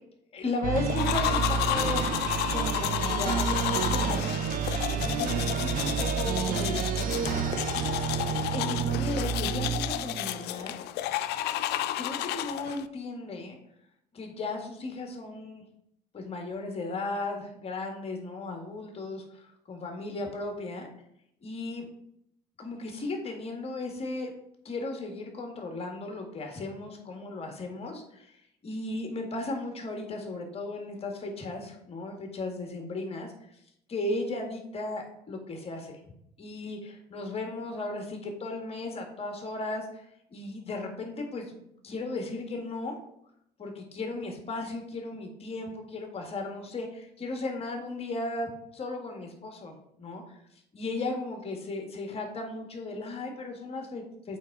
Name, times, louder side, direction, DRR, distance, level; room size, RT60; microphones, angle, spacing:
voice 1, 0.3-2.1 2.5-7.6 8.5-10.8 12.0-13.6 14.1-15.6 16.1-19.4 19.7-20.9 21.4-21.9 22.6-24.3 24.6-28.4 28.6-33.3 33.9-36.0 36.4-41.5 41.8-43.0 43.6-50.4 50.7-54.4, left 2 dB, 35° left, 3 dB, 1.8 m, -36 dB
sound 1, 0.6-10.5, right 7 dB, 55° right, 0.5 m, -30 dB
sound 2, 0.9-12.9, left 13 dB, 80° left, 0.4 m, -32 dB
8.2 x 3.7 x 4.7 m, 0.74 s
cardioid pair, 110°, 17 cm